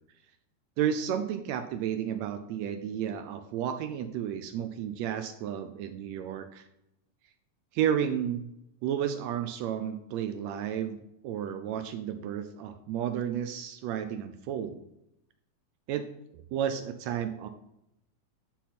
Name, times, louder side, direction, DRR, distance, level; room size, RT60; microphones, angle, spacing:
voice 1, 0.8-6.7 7.7-8.5 8.8-14.8 15.9-16.1 16.3-17.5, right 9 dB, 80° right, 8 dB, 1.6 m, -32 dB
9.9 x 4.0 x 4.2 m, 0.81 s
omnidirectional pair, 3.5 m